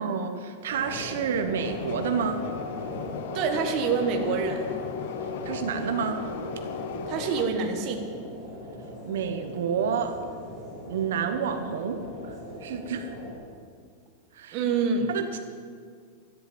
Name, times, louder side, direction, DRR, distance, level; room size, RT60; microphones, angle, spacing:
voice 1, 0.0-2.5 5.2-6.3 9.0-10.2 10.9-13.1 14.3-14.6 15.1-15.4, right 6 dB, 80° right, 6 dB, 1.1 m, -29 dB
sound 1, 0.7-13.3, equal, 20° left, 4.6 m, -40 dB
sound 2, 1.6-7.5, left 6 dB, 60° left, 1.0 m, -36 dB
voice 2, 3.3-4.7 7.1-8.0 14.5-15.1, right 5 dB, 35° right, 3 dB, 1.5 m, -26 dB
13.0 x 8.6 x 8.7 m, 2.1 s
supercardioid pair, 170°, 0 cm